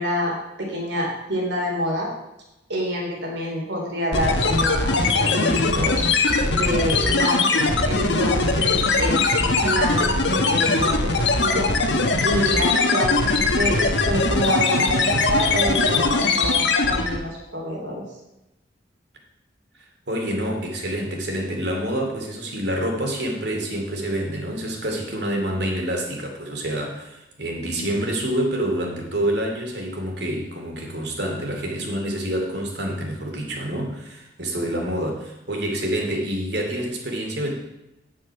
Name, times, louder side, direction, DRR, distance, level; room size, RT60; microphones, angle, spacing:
voice 1, 0.0-2.1 2.7-6.0 6.5-11.1 11.4-11.7 12.2-18.0, equal, 90° right, -1 dB, 3.7 m, -27 dB
sound 1, 4.1-17.3, left 3 dB, 85° left, 1.2 m, -21 dB
voice 2, 20.1-37.5, right 1 dB, 65° right, 1 dB, 2.6 m, -27 dB
9.8 x 7.6 x 5.9 m, 0.94 s
head